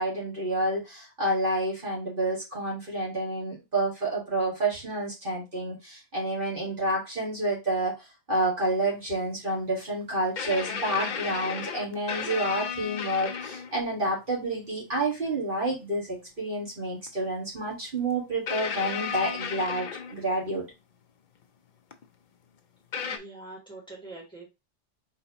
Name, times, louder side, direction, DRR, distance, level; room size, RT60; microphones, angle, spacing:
voice 1, 0.0-7.9 8.3-20.6, right 1 dB, 45° right, -4 dB, 2.0 m, -29 dB
sound 1, 8.8-8.9 10.4-13.8 15.1-15.2 17.1-17.2 18.5-20.5 21.9-22.0 22.9-23.2, left 6 dB, 55° left, 0.6 m, -34 dB
voice 2, 23.1-24.5, right 2 dB, 5° left, -4 dB, 2.2 m, -44 dB
4.2 x 3.9 x 2.8 m, 0.25 s
omnidirectional pair, 1.2 m